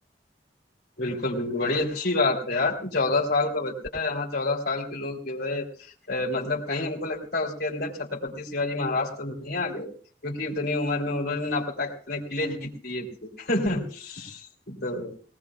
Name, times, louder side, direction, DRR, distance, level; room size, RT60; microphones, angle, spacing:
voice 1, 1.0-5.7 6.1-9.9 10.2-15.3, left 2 dB, 60° left, -3 dB, 3.3 m, -28 dB
20.0 x 18.5 x 2.4 m, 0.43 s
head